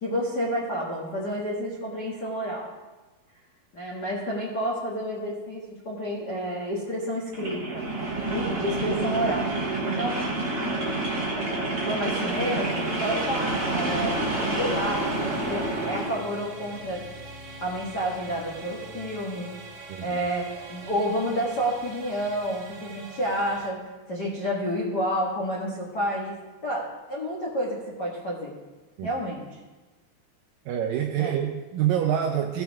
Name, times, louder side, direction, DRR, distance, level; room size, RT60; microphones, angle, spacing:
voice 1, 0.0-2.7 3.7-7.9 8.3-9.5 9.8-10.2 11.8-17.0 17.6-19.5 20.0-23.8 24.1-26.3 26.6-28.5 29.0-29.6 31.2-31.3, equal, 90° left, -5 dB, 0.9 m, -30 dB
sound 1, 7.3-16.2, right 2 dB, 20° right, 3.2 m, -28 dB
sound 2, 12.3-23.7, right 2 dB, 55° right, 2.8 m, -43 dB
voice 2, 30.7-32.6, right 10 dB, 80° right, 3 dB, 2.0 m, -26 dB
16.5 x 6.8 x 3.5 m, 1.2 s
omnidirectional pair, 4.7 m